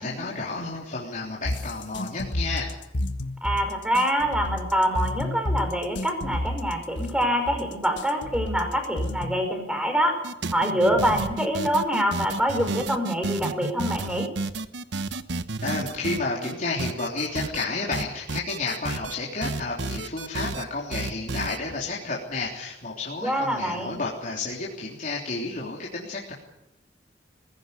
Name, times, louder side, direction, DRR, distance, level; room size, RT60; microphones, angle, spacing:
voice 1, 0.0-2.7 15.6-26.3, left 3 dB, 45° left, -4 dB, 3.5 m, -31 dB
sound 1, 1.4-9.5, left 1 dB, 85° left, 1.5 m, -30 dB
voice 2, 3.4-10.2 10.5-14.3 23.2-24.0, equal, 5° right, 5 dB, 5.1 m, -25 dB
sound 2, 10.2-16.5 16.8-17.6 17.9-19.1 19.4-20.6 20.9-21.6, right 3 dB, 75° right, 1.0 m, -31 dB
20.5 x 16.0 x 9.7 m, 0.87 s
head